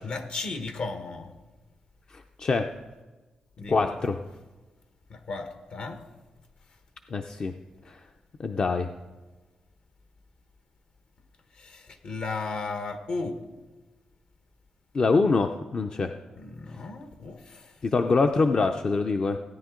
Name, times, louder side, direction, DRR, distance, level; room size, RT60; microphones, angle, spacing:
voice 1, 0.0-1.3 3.6-3.9 5.1-6.0 11.6-13.4 16.4-17.7, left 3 dB, 65° left, 7 dB, 1.2 m, -35 dB
voice 2, 2.1-2.7 3.7-4.2 7.1-7.5 7.9-8.0 8.4-8.9 14.9-16.2 17.8-19.4, left 4 dB, 45° left, 6 dB, 0.5 m, -25 dB
16.5 x 9.5 x 3.8 m, 1.2 s
cardioid pair, 80°, 2 cm